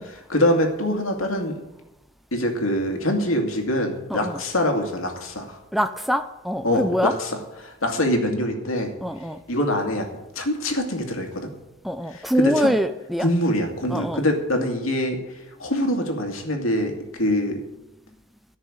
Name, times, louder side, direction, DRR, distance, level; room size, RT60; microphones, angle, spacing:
voice 1, 0.0-1.6 2.3-5.6 6.6-7.3 7.6-8.9 9.5-10.1 10.4-11.5 12.1-12.7 13.2-15.2 15.6-17.6, left 1 dB, 80° left, 3 dB, 2.4 m, -24 dB
voice 2, 5.7-7.1 9.0-9.4 11.8-13.3 13.9-14.2, equal, ahead, 9 dB, 0.5 m, -24 dB
13.5 x 6.6 x 8.7 m, 1.0 s
head